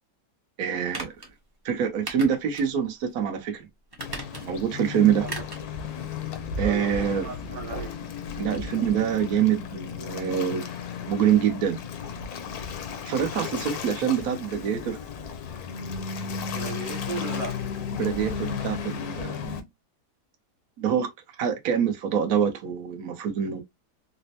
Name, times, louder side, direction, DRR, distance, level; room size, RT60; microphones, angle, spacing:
voice 1, 0.6-1.1 1.6-3.7 4.4-5.3 6.6-7.3 8.4-10.7 11.0-11.8 13.1-15.0 18.0-19.5 20.8-23.6, right 8 dB, 65° right, 1.2 m, -25 dB
sound 1, 0.9-1.3 2.1-2.7 3.1-3.2 3.9-4.7 5.2-5.7 6.0-6.1, right 2 dB, 20° right, 0.7 m, -37 dB
Waves surf, 4.0-19.6, left 6 dB, 70° left, 1.1 m, -34 dB
voice 2, 5.0-5.3 6.6-7.9 16.5-17.6, right 5 dB, 85° right, 1.3 m, -36 dB
4.1 x 2.1 x 2.7 m
omnidirectional pair, 1.8 m